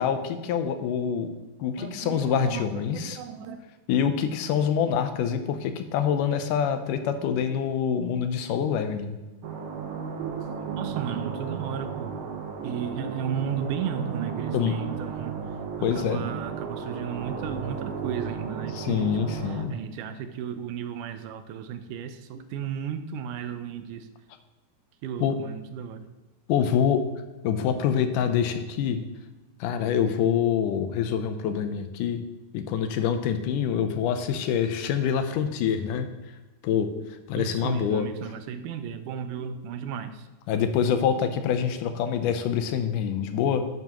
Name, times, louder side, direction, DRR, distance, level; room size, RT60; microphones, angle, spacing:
voice 1, 0.0-1.3 1.6-3.2 3.9-9.2 14.5-14.8 15.8-16.2 18.7-19.7 25.2-25.4 26.5-27.1 27.4-29.0 29.6-32.3 32.5-36.1 36.6-36.9 37.3-38.1 40.5-43.7, left 8 dB, 85° left, 8 dB, 2.4 m, -26 dB
voice 2, 1.8-3.6 10.2-12.1 12.6-15.4 15.8-24.1 25.0-26.1 36.9-37.0 37.4-40.3, right 8 dB, 80° right, 9 dB, 2.2 m, -34 dB
sound 1, 9.4-19.6, right 6 dB, 60° right, 1.5 m, -34 dB
11.5 x 9.2 x 3.1 m, 1.1 s
omnidirectional pair, 3.6 m